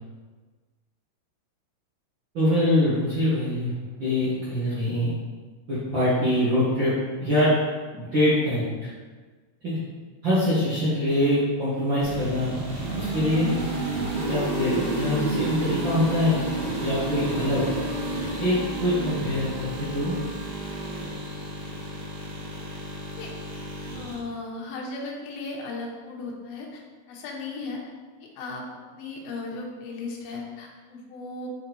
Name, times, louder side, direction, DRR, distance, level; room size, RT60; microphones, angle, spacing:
voice 1, 2.3-3.7 4.0-5.1 5.7-6.9 7.2-7.5 7.9-8.9 9.6-9.8 10.2-12.6 13.0-13.5 14.3-16.4 16.8-17.7 18.4-20.2, left 1 dB, 55° right, -12 dB, 1.3 m, -24 dB
sound 1, 12.0-24.2, right 2 dB, 70° right, 3.5 m, -30 dB
voice 2, 23.9-26.8 27.1-27.8 28.2-28.6 28.9-31.5, left 3 dB, 75° left, -1 dB, 2.8 m, -36 dB
7.5 x 4.3 x 4.0 m, 1.4 s
omnidirectional pair, 4.7 m